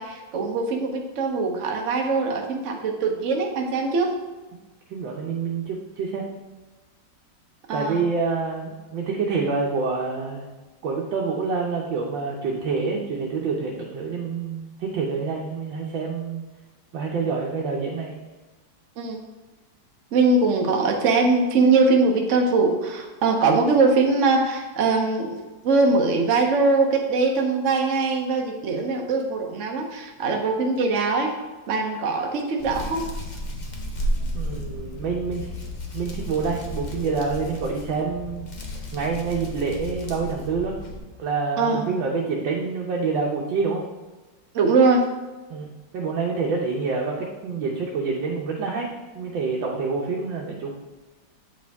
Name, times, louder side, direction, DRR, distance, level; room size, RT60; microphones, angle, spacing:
voice 1, 0.0-4.2 7.7-8.0 19.0-19.2 20.1-31.3 31.7-33.1 41.6-41.9 44.5-45.0, right 3 dB, 55° right, 2 dB, 0.9 m, -22 dB
voice 2, 4.9-6.2 7.7-10.5 10.8-16.4 16.9-18.1 34.3-35.5 35.9-38.5 38.9-40.8 41.2-43.8 45.5-48.9 49.1-50.7, right 4 dB, 80° right, -3 dB, 1.6 m, -27 dB
Hands, 32.6-41.0, equal, 40° left, 0.6 m, -33 dB
7.9 x 5.0 x 3.5 m, 1.2 s
omnidirectional pair, 2.0 m